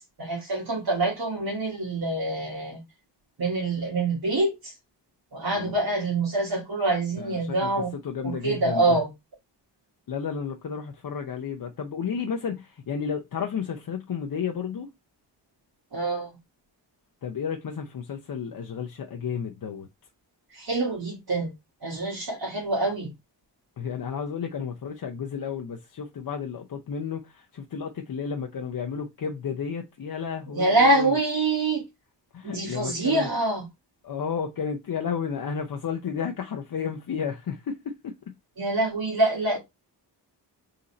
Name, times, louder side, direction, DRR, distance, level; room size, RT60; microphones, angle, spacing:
voice 1, 0.2-2.8 3.4-4.7 5.3-7.9 8.2-9.1 15.9-16.3 20.5-21.5 21.8-23.1 30.6-31.8 32.4-33.6 38.6-39.6, right 2 dB, 60° right, 1.5 m, -25 dB
voice 2, 7.2-9.0 10.1-14.9 17.2-19.9 23.8-31.2 32.3-33.3 34.0-38.3, left 6 dB, 55° left, 0.7 m, -32 dB
3.9 x 2.7 x 4.1 m
wide cardioid pair, 100°, 42 cm